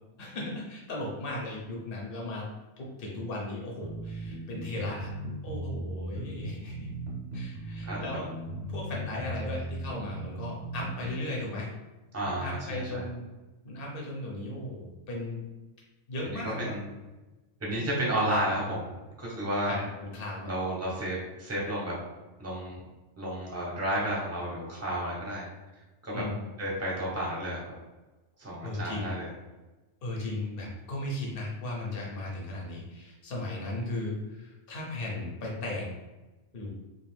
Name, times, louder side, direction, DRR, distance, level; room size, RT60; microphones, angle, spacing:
voice 1, 0.2-2.5 2.8-5.1 5.4-6.9 7.3-8.3 8.7-11.7 12.2-13.2 13.6-15.4 16.1-16.8 17.7-18.0 19.7-19.8 20.1-20.5 26.1-26.4 28.6-29.1 30.0-35.9 36.5-36.7, left 1 dB, 50° left, -2 dB, 0.9 m, -36 dB
sound 1, 3.8-11.2, right 2 dB, 60° right, 0.9 m, -37 dB
voice 2, 7.8-8.2 12.1-13.1 16.2-17.0 17.6-18.9 19.2-19.8 20.5-22.0 22.4-22.8 23.2-25.5 26.0-26.2 26.6-27.6 28.4-29.3, right 1 dB, 15° right, -5 dB, 0.7 m, -32 dB
2.5 x 2.4 x 3.3 m, 1.1 s
omnidirectional pair, 1.3 m